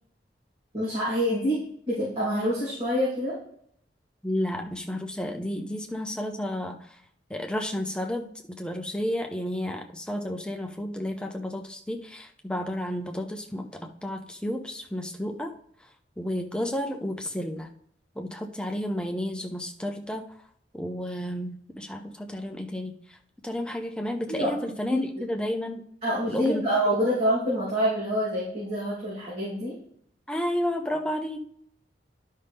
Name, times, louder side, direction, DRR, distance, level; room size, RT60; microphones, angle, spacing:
voice 1, 0.7-1.6 1.9-3.4 24.3-24.5 24.9-25.1 26.0-29.8, equal, 35° right, -10 dB, 3.2 m, -26 dB
voice 2, 4.2-7.0 7.3-15.5 15.8-15.9 16.2-17.7 18.1-20.5 20.7-23.2 23.4-25.8 26.3-26.7 30.3-31.4, left 1 dB, 5° left, 2 dB, 0.7 m, -32 dB
11.0 x 5.5 x 3.5 m, 0.67 s
head